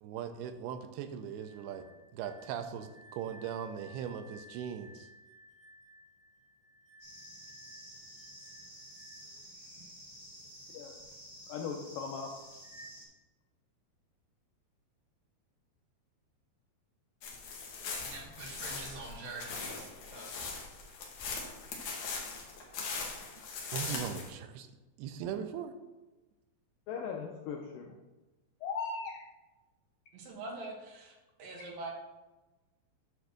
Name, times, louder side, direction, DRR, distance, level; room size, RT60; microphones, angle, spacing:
voice 1, 0.0-1.9 2.1-5.1 22.8-22.9 23.7-24.7 25.0-25.7, right 8 dB, 85° right, 8 dB, 2.5 m, -39 dB
sound 1, 1.2-9.4, left 1 dB, 5° left, 2.2 m, -58 dB
sound 2, 7.0-13.0, equal, 20° right, 2.4 m, -51 dB
voice 2, 11.5-12.4 26.9-28.0 28.6-29.2, left 5 dB, 90° left, 1 dB, 1.9 m, -38 dB
sound 3, 17.2-24.3, left 4 dB, 60° left, 2.3 m, -40 dB
voice 3, 17.9-20.2 30.1-31.9, right 2 dB, 65° right, -1 dB, 2.9 m, -44 dB
9.2 x 3.5 x 6.4 m, 1.1 s
omnidirectional pair, 4.6 m